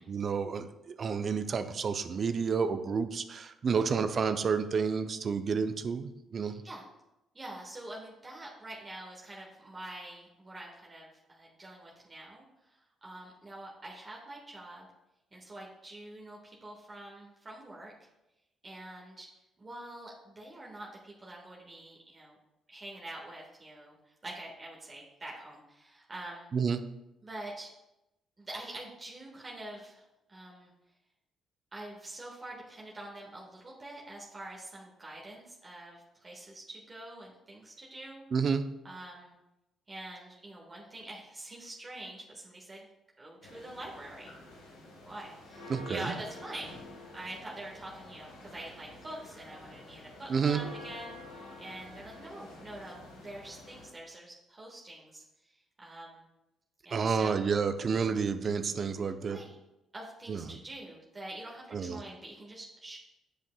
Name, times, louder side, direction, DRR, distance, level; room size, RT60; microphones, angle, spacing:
voice 1, 0.0-6.6 26.5-26.8 38.3-38.6 45.7-46.1 50.3-50.6 56.9-59.4 60.3-60.6 61.7-62.0, right 5 dB, 50° right, 10 dB, 0.5 m, -30 dB
voice 2, 6.4-6.8 7.3-14.9 15.3-17.9 18.6-19.3 19.6-22.4 22.7-26.5 27.2-27.7 28.4-30.7 31.7-38.2 38.8-39.3 39.9-42.9 43.2-44.3 44.8-46.8 47.1-56.3 56.8-57.5 59.0-59.5 59.9-63.0, right 1 dB, 30° right, -3 dB, 1.5 m, -46 dB
sound 1, 43.4-53.9, left 2 dB, 80° left, 1.5 m, -49 dB
10.0 x 5.4 x 2.3 m, 0.93 s
hypercardioid pair, 45°, 0 cm